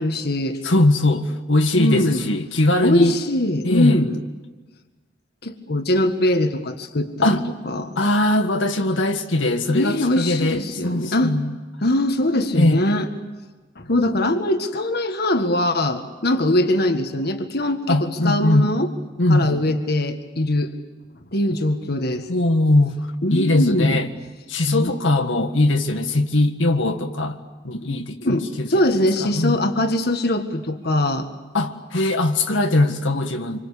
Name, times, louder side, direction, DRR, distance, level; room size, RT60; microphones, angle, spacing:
voice 1, 0.0-0.6 1.7-2.3 2.8-4.2 5.4-7.4 7.6-8.0 9.7-11.4 11.8-13.1 13.8-18.9 19.3-20.7 21.3-22.3 23.2-24.0 24.7-24.9 28.2-31.3, left 1 dB, 55° left, 7 dB, 1.7 m, -21 dB
voice 2, 0.6-3.1 3.6-4.0 7.2-7.4 7.9-11.5 12.5-12.8 17.9-18.7 19.2-19.7 22.3-22.9 23.3-24.1 24.5-27.4 27.6-28.2 28.6-28.8 29.2-29.6 31.5-33.6, left 2 dB, 85° left, 5 dB, 1.7 m, -20 dB
27.5 x 25.0 x 8.5 m, 1.3 s
head